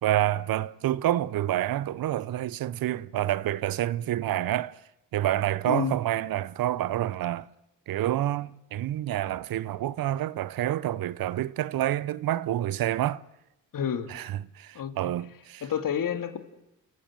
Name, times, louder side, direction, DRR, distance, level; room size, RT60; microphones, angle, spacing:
voice 1, 0.0-4.8 5.1-7.5 7.9-13.2 14.1-15.6, right 13 dB, 70° right, 0.8 m, -28 dB
voice 2, 5.7-6.0 13.7-14.1 14.7-15.1 15.6-16.4, left 8 dB, 60° left, 2.5 m, -29 dB
29.0 x 14.5 x 8.9 m
supercardioid pair, 70°, 37 cm